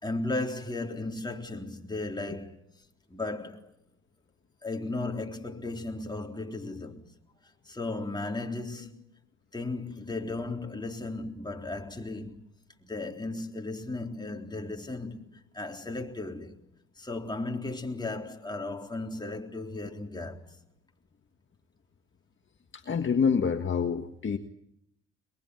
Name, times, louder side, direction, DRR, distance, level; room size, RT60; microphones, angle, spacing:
voice 1, 0.0-2.6 3.1-3.7 4.6-7.0 7.7-9.1 9.5-12.4 12.8-16.6 17.0-20.6, left 2 dB, 15° left, 3.8 m, -35 dB
voice 2, 22.7-24.4, left 6 dB, 40° left, 1.8 m, -27 dB
23.0 x 22.5 x 9.7 m
cardioid pair, 90°, 30 cm